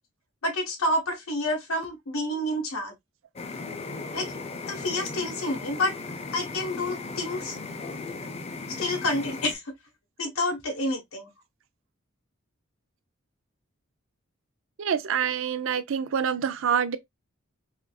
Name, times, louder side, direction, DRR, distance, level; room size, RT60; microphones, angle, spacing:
voice 1, 0.4-2.9 4.1-4.3 4.7-5.9 6.3-7.6 8.8-9.7 10.2-11.3, left 1 dB, 85° left, 1.1 m, -28 dB
sound 1, 3.3-9.5, left 3 dB, 30° left, 0.5 m, -37 dB
voice 2, 14.8-17.0, right 7 dB, 65° right, 0.4 m, -26 dB
3.6 x 2.5 x 2.2 m
head